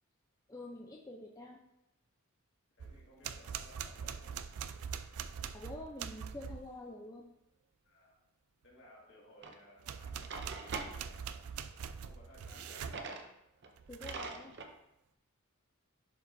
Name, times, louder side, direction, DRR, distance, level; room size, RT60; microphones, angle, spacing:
voice 1, 0.5-1.6 5.5-7.2 13.9-14.6, left 1 dB, 15° left, -1 dB, 0.5 m, -47 dB
voice 2, 2.8-4.5 5.0-5.7 7.8-8.2 8.6-11.5 12.0-13.3, equal, 55° left, -4 dB, 2.0 m, -60 dB
sound 1, 2.8-6.7 9.8-13.0 13.8-14.3, right 7 dB, 90° right, 0.4 m, -43 dB
Drawer open or close, 9.4-9.6 10.1-10.9 12.5-13.3 13.6-13.7 14.0-14.7, right 4 dB, 50° right, 0.7 m, -43 dB
11.0 x 4.8 x 2.7 m, 0.85 s
head